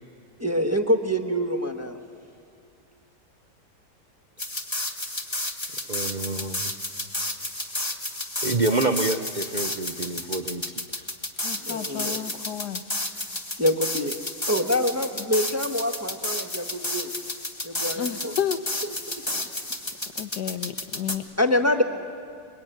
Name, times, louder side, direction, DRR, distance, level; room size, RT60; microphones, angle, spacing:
voice 1, 0.4-2.0 11.6-12.2 13.6-14.1 14.5-17.1 17.6-18.3 21.4-21.8, left 1 dB, 10° right, 4 dB, 1.1 m, -25 dB
sound 1, 4.4-21.1, left 1 dB, 15° left, 1.6 m, -32 dB
voice 2, 5.9-6.7 8.4-10.6, right 2 dB, 50° right, 6 dB, 0.5 m, -27 dB
voice 3, 11.4-12.8 15.1-15.3 17.9-18.6 20.2-21.3, left 9 dB, 70° left, 11 dB, 1.5 m, -31 dB
26.5 x 23.0 x 9.1 m, 2.3 s
omnidirectional pair, 1.9 m